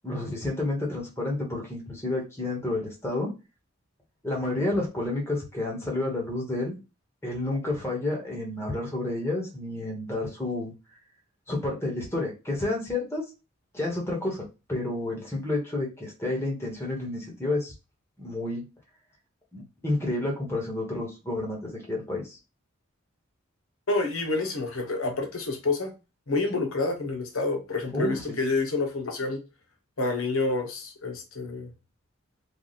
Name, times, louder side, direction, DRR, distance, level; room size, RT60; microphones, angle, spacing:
voice 1, 0.0-3.3 4.2-6.8 7.2-10.7 11.5-13.2 13.7-17.7 18.2-18.6 19.5-22.4 27.9-28.4, left 2 dB, 15° left, -2 dB, 1.2 m, -30 dB
voice 2, 23.9-25.9 26.3-29.4 30.0-31.7, left 3 dB, 85° left, 4 dB, 0.9 m, -28 dB
3.3 x 2.4 x 4.1 m, 0.28 s
head